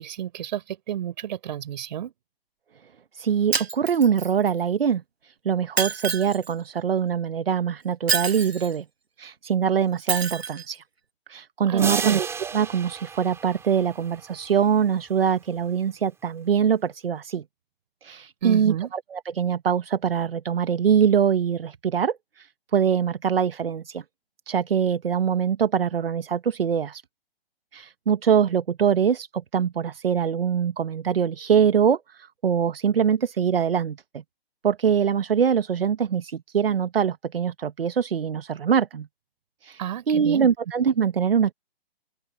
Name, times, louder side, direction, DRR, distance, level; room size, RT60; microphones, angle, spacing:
voice 1, 0.0-2.1 11.7-12.2 18.4-18.9 39.8-40.5, right 10 dB, 45° right, 4.3 m, -31 dB
voice 2, 3.1-8.8 9.2-10.8 11.3-17.4 18.0-24.0 24.5-27.0 27.7-34.2 34.6-39.1 39.6-41.5, right 7 dB, 70° right, 1.3 m, -23 dB
Shatter, 3.5-4.5 5.8-6.5 8.1-8.7 10.1-10.6, right 5 dB, 90° right, 1.2 m, -27 dB
sound 1, 11.8-14.5, right 6 dB, 10° right, 3.3 m, -32 dB
figure-of-eight pair, 135°, 30 cm